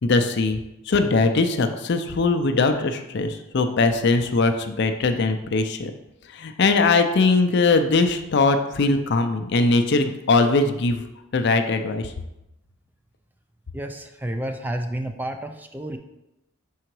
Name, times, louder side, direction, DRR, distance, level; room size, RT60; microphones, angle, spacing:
voice 1, 0.0-0.6 0.9-5.9 6.3-11.0 11.3-12.1, left 3 dB, 55° left, 7 dB, 0.5 m, -21 dB
voice 2, 13.7-16.0, right 1 dB, 10° right, 6 dB, 0.3 m, -30 dB
5.6 x 3.8 x 4.6 m, 0.93 s
head